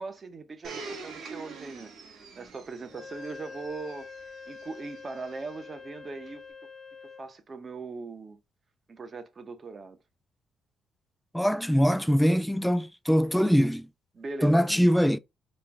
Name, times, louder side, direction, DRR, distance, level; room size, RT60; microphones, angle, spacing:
voice 1, 0.0-1.9 2.4-6.4 7.0-8.4 8.9-10.0 13.3-13.6 14.1-14.9, right 3 dB, 40° right, 0.9 m, -40 dB
Domestic sounds home sounds, 0.6-5.5 6.3-6.4, right 4 dB, 65° right, 1.5 m, -45 dB
Wind instrument woodwind instrument, 2.9-7.4, left 5 dB, 35° left, 0.8 m, -45 dB
voice 2, 11.3-13.8 14.4-15.2, equal, ahead, 0.3 m, -22 dB
4.4 x 2.3 x 3.4 m
cardioid pair, 90°, 0 cm